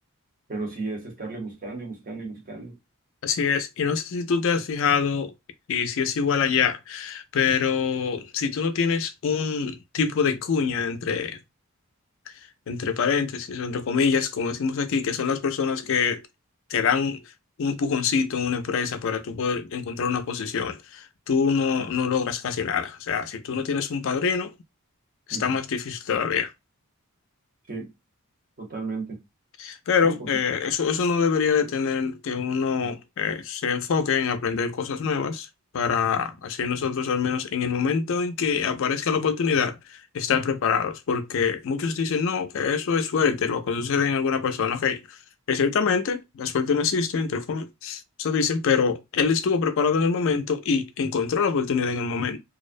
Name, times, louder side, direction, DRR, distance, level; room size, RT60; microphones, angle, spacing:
voice 1, 0.5-2.8 21.8-21.9 25.3-25.6 27.7-27.9 28.6-29.2 30.0-30.4, right 3 dB, 40° right, 0.9 m, -34 dB
voice 2, 3.2-5.3 5.7-11.4 12.7-16.2 16.7-17.2 17.6-24.5 25.3-26.5 29.6-35.5 35.7-45.2 45.5-52.4, left 6 dB, 60° left, 0.4 m, -25 dB
2.4 x 2.1 x 2.5 m
head